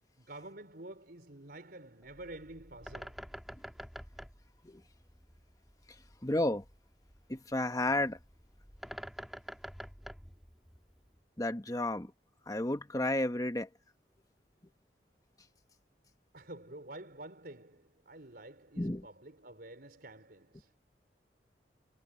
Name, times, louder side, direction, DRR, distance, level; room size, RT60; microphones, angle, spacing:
voice 1, 0.2-3.2 16.3-20.7, right 1 dB, 60° right, 4.9 m, -49 dB
Bird, 2.0-11.2, equal, ahead, 2.4 m, -49 dB
voice 2, 6.2-6.6 7.3-8.2 11.4-12.1 12.5-13.7 18.8-19.0, left 1 dB, 20° left, 1.4 m, -32 dB
head